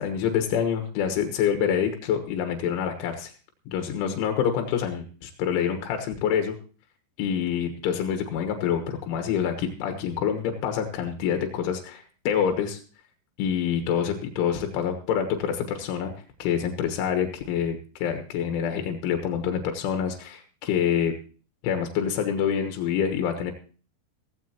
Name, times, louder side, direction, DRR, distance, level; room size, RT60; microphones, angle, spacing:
voice 1, 0.0-3.3 3.7-6.6 7.2-12.8 13.4-16.1 16.4-21.1 21.6-23.5, left 8 dB, 90° left, 5 dB, 3.8 m, -26 dB
16.0 x 15.5 x 2.9 m, 0.39 s
omnidirectional pair, 5.3 m